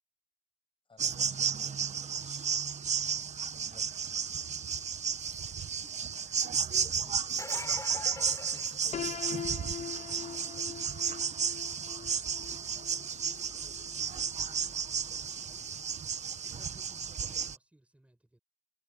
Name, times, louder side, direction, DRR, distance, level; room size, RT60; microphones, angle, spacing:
voice 1, 0.9-1.6 2.0-2.5 3.5-4.3 7.0-10.4, left 4 dB, 45° left, 6.3 m, -56 dB
sound 1, 1.0-17.6, right 6 dB, 75° right, 1.0 m, -33 dB
voice 2, 6.5-7.2 12.0-15.7 16.4-18.4, right 1 dB, 10° right, 7.8 m, -61 dB
sound 2, 7.2-9.4 15.0-15.1 16.9-17.0, left 2 dB, 25° left, 3.9 m, -43 dB
Piano, 8.9-14.8, left 9 dB, 75° left, 0.6 m, -43 dB
wide cardioid pair, 150°, 12 cm